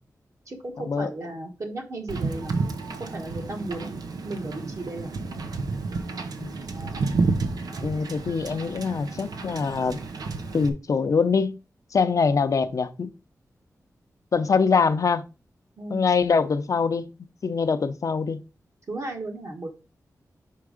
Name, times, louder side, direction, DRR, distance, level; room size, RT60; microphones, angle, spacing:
voice 1, 0.5-5.2 15.8-16.1 18.9-19.7, right 2 dB, 55° right, 1.5 m, -35 dB
Wind / Boat Water vehicle, 2.1-10.7, right 3 dB, 90° right, 0.8 m, -30 dB
voice 2, 7.8-10.0 10.5-11.5 11.9-13.1 14.3-15.3 15.9-17.1 17.4-18.4, left 5 dB, 60° left, 0.6 m, -23 dB
5.2 x 4.7 x 5.0 m
wide cardioid pair, 115°, 6 cm